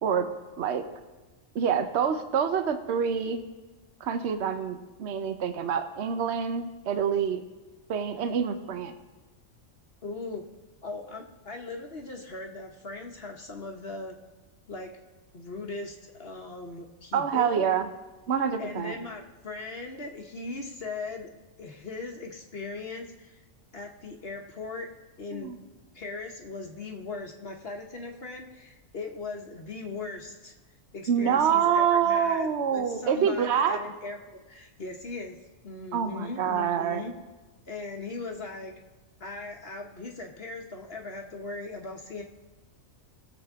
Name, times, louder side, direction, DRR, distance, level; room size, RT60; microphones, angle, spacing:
voice 1, 1.5-3.4 4.0-7.4 7.9-8.9 17.1-17.9 18.3-19.0 25.3-25.6 31.1-33.8 35.9-37.0, right 7 dB, 55° right, 8 dB, 1.1 m, -26 dB
voice 2, 10.0-10.4 10.8-14.2 14.7-14.9 15.3-17.7 18.6-21.3 21.6-23.4 23.7-24.9 25.2-25.5 25.9-30.5 30.9-35.4 35.6-37.1 37.7-38.7 39.2-42.2, left 3 dB, 50° left, 3 dB, 1.1 m, -39 dB
19.5 x 7.3 x 3.6 m, 1.2 s
omnidirectional pair, 1.4 m